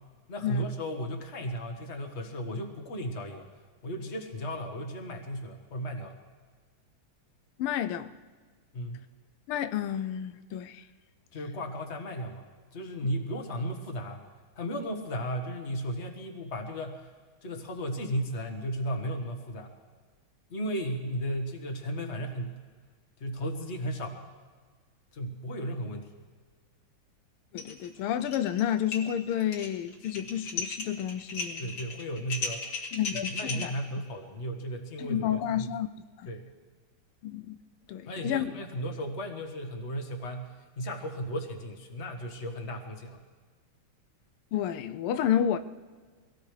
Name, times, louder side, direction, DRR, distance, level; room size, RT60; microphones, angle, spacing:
voice 1, 0.3-3.5 3.8-6.2 8.7-9.0 11.3-14.2 14.5-17.0 17.4-19.7 20.5-22.5 23.2-24.2 25.1-26.1 30.2-30.3 31.6-32.6 33.3-35.3 35.5-35.7 36.2-36.4 38.1-43.2, equal, 35° left, 1.5 m, -35 dB
voice 2, 7.6-8.1 9.5-10.8 27.5-31.8 32.9-33.7 35.0-35.9 36.2-36.3 37.2-37.6 37.9-38.6 44.5-45.6, left 10 dB, 90° left, 1.5 m, -30 dB
sound 1, 27.6-27.9 28.1-28.6 28.9-33.6, left 4 dB, 50° left, 2.1 m, -36 dB
24.5 x 17.5 x 3.3 m
omnidirectional pair, 2.3 m